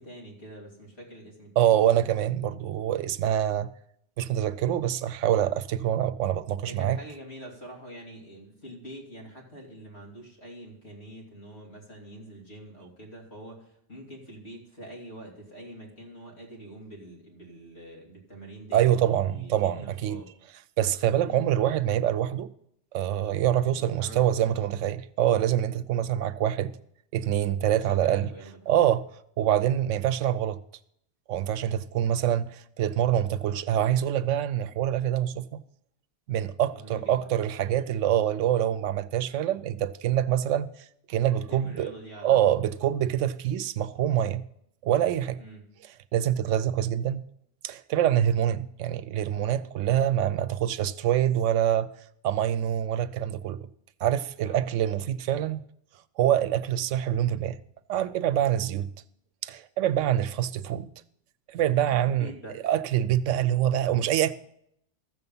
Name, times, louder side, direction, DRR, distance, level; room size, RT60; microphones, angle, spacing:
voice 1, 0.0-1.8 6.7-20.3 21.2-21.4 23.7-24.7 27.7-28.9 36.7-37.3 41.3-42.5 45.4-45.7 54.4-54.6 61.9-62.6, right 1 dB, 60° left, 2.9 m, -45 dB
voice 2, 1.6-3.7 4.2-7.0 18.7-20.2 20.8-22.5 22.9-26.7 27.1-28.3 28.7-29.0 29.4-30.6 31.3-35.6 36.3-40.7 41.1-41.9 42.2-44.4 44.8-45.4 46.1-47.2 47.6-51.9 52.2-53.6 54.0-55.6 56.2-57.6 57.9-58.9 59.4-60.9 61.5-62.3 62.6-64.3, right 11 dB, 90° right, 0.9 m, -25 dB
14.0 x 6.9 x 5.5 m
omnidirectional pair, 1.2 m